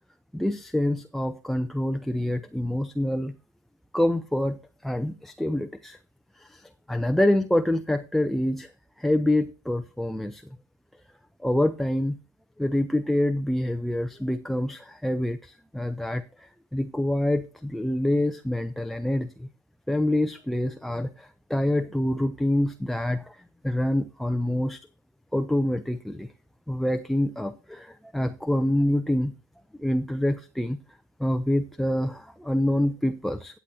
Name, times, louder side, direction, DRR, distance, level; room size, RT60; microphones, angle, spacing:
voice 1, 0.3-3.3 3.9-6.0 6.4-8.7 9.0-10.4 11.4-12.2 12.6-19.5 19.9-24.8 25.3-26.3 26.7-29.3 29.8-30.8 31.2-33.6, left 1 dB, ahead, 0.6 m, -26 dB
16.0 x 8.2 x 2.8 m
hypercardioid pair, 75°, 12 cm